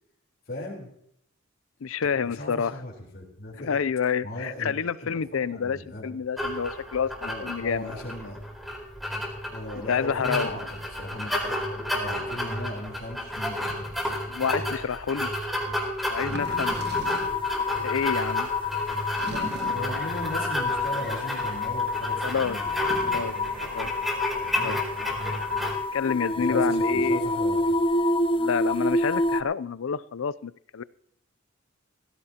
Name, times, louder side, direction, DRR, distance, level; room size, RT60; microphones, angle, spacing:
voice 1, 0.5-0.9 2.2-3.8 4.2-6.2 7.2-8.4 9.5-14.1 19.2-23.9 24.4-24.7 26.3-27.7, left 1 dB, 50° left, -4 dB, 3.9 m, -38 dB
voice 2, 1.8-2.7 3.7-7.9 9.9-10.5 14.3-15.3 16.1-16.8 17.8-18.5 22.2-22.6 23.0-23.3 23.6-23.9 24.5-24.8 25.9-27.2 28.3-30.8, left 6 dB, 85° left, 18 dB, 0.5 m, -28 dB
sound 1, 6.4-25.8, left 1 dB, ahead, 4.4 m, -32 dB
sound 2, 16.2-17.5 19.2-20.0 22.7-23.4, right 2 dB, 55° right, 1.4 m, -39 dB
sound 3, 16.4-29.4, left 2 dB, 25° left, 0.6 m, -28 dB
18.0 x 15.5 x 2.9 m, 0.68 s
head